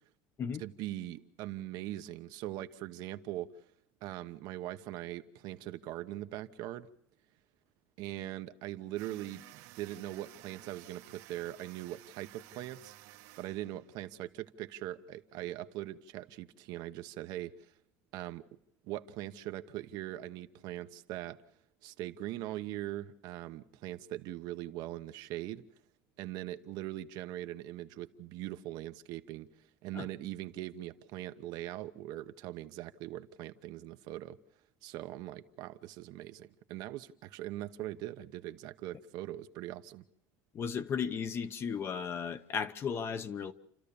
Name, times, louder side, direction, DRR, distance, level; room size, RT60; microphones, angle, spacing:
voice 1, 0.6-3.7 4.0-6.9 8.0-12.9 13.4-17.7 18.1-18.4 18.8-21.4 21.8-25.6 26.2-34.4 34.8-40.0, right 14 dB, 60° right, 1.0 m, -41 dB
sound 1, 9.0-14.1, right 16 dB, 80° right, 1.6 m, -55 dB
voice 2, 40.5-43.5, left 6 dB, 30° left, 0.9 m, -35 dB
29.0 x 13.5 x 7.0 m
cardioid pair, 155°, 8 cm